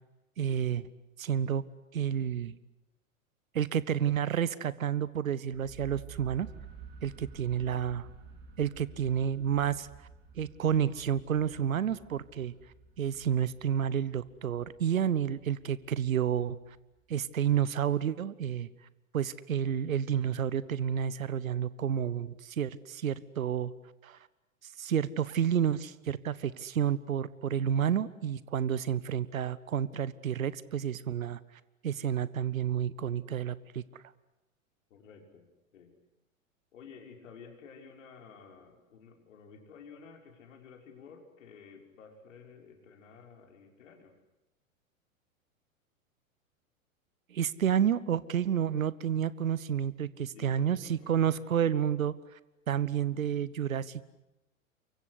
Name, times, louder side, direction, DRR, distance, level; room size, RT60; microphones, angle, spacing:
voice 1, 0.4-0.9 1.2-1.6 1.9-2.5 3.5-6.5 7.0-8.0 8.6-9.9 10.4-12.5 13.0-16.6 17.1-18.7 19.1-23.7 24.0-24.2 24.6-31.4 31.8-34.0 47.3-52.4 52.7-54.0, right 9 dB, 75° right, 18 dB, 1.1 m, -30 dB
sound 1, 5.5-17.4, right 6 dB, 25° right, 4.7 m, -52 dB
voice 2, 34.9-35.9 36.7-44.1 50.3-51.4 51.7-51.9, left 6 dB, 65° left, 3 dB, 6.0 m, -53 dB
29.0 x 24.0 x 8.3 m, 0.95 s
figure-of-eight pair, 100°, 41 cm